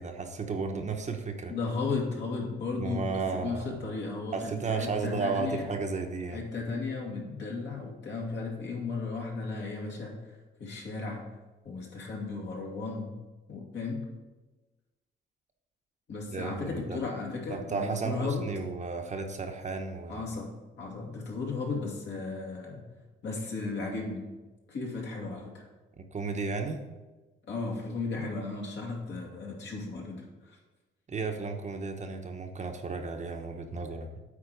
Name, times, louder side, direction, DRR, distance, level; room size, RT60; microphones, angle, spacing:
voice 1, 0.0-1.5 2.8-3.8 4.3-6.4 16.3-17.0 17.5-20.2 26.0-26.8 31.1-34.2, right 4 dB, 35° right, 4 dB, 1.0 m, -33 dB
voice 2, 1.5-5.7 6.3-10.2 10.6-11.3 11.6-13.2 13.5-14.0 16.1-18.4 20.1-20.5 20.8-22.8 23.2-24.3 24.7-25.6 27.5-30.6, left 4 dB, 60° left, -1 dB, 2.3 m, -35 dB
8.4 x 4.4 x 6.1 m, 1.2 s
cardioid pair, 90°, 20 cm